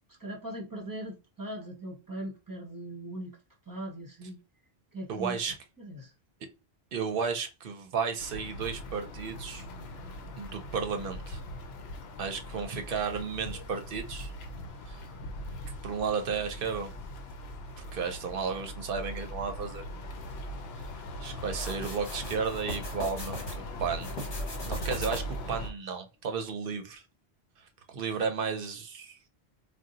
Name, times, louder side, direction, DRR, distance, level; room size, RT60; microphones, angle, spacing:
voice 1, 0.2-3.4 3.7-4.4 4.9-5.4 5.8-6.1, right 1 dB, 20° right, 0.9 m, -39 dB
voice 2, 5.1-5.5 6.9-9.6 10.4-11.4 12.2-14.3 14.9-15.0 15.8-16.9 17.9-19.8 21.2-24.1 24.6-27.0 27.6-29.2, right 6 dB, 60° right, 0.7 m, -33 dB
sound 1, 8.2-25.7, left 1 dB, 75° left, 0.8 m, -40 dB
sound 2, 21.5-23.6 24.0-25.5, equal, 50° left, 1.3 m, -39 dB
2.6 x 2.2 x 3.8 m
omnidirectional pair, 1.1 m